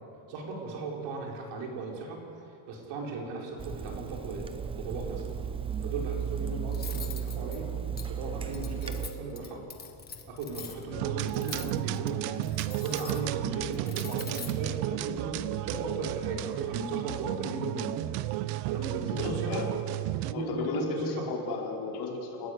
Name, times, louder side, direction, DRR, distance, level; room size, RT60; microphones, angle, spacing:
voice 1, 0.3-2.2 2.7-4.5 4.8-5.2 5.8-7.7 8.1-9.6 10.3-18.0 18.7-19.6 20.1-21.3, right 3 dB, 60° right, 0 dB, 5.2 m, -37 dB
Water tap faucet / Sink (filling or washing), 3.6-9.1, right 8 dB, 10° right, 0.4 m, -35 dB
Cutlery silverware, 6.7-15.4, left 6 dB, 20° left, 1.6 m, -45 dB
sound 1, 10.9-20.3, right 15 dB, 80° right, 0.9 m, -33 dB
voice 2, 19.0-19.7 20.3-22.5, left 3 dB, 55° left, -2 dB, 5.0 m, -34 dB
29.5 x 15.5 x 8.3 m, 2.7 s
cardioid pair, 170°, 48 cm